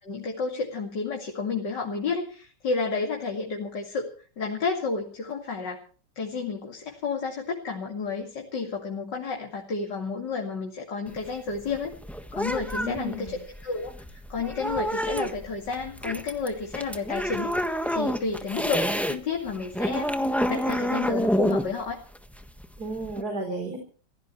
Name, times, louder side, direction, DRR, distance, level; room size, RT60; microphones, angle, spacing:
voice 1, 0.0-4.1 4.4-5.8 6.2-11.9 12.3-20.1 20.5-22.0, left 4 dB, 90° left, 0 dB, 3.1 m, -31 dB
sound 1, 11.1-19.2 19.5-23.2, equal, ahead, 1.3 m, -28 dB
voice 2, 12.8-13.4 22.8-23.8, right 1 dB, 65° right, 4 dB, 4.6 m, -32 dB
26.0 x 16.5 x 3.2 m, 0.40 s
omnidirectional pair, 1.8 m